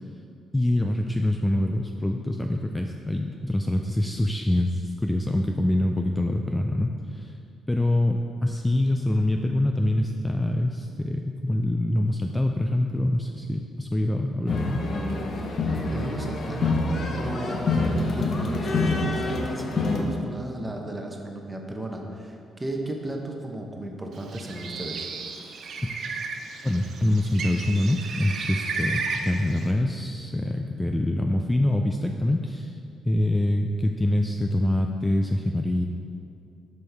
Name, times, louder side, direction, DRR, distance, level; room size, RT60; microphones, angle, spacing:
voice 1, 0.5-7.3 7.7-14.9 25.8-26.0 26.6-32.8 33.0-35.9, left 1 dB, 10° left, 3 dB, 0.3 m, -25 dB
sound 1, 14.5-20.0, left 3 dB, 50° left, 0.8 m, -26 dB
voice 2, 15.9-16.8 17.2-25.1, right 1 dB, 15° right, 2 dB, 0.9 m, -34 dB
Bird, 24.2-29.7, right 4 dB, 60° right, 0.6 m, -33 dB
7.6 x 5.4 x 3.4 m, 2.5 s
cardioid pair, 90°, 0 cm